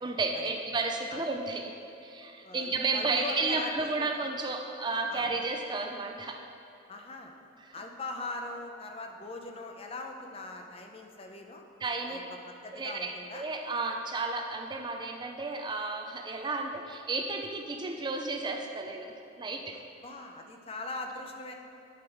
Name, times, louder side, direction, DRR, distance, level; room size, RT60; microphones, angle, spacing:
voice 1, 0.0-1.8 2.0-6.4 7.6-7.7 11.8-12.2 12.7-19.8, right 3 dB, 25° right, 4 dB, 0.4 m, -33 dB
voice 2, 2.4-4.1 5.1-5.3 6.9-7.3 7.7-11.6 12.1-13.5 19.7-21.5, left 2 dB, 30° left, 3 dB, 0.6 m, -41 dB
10.0 x 5.4 x 4.6 m, 2.8 s
head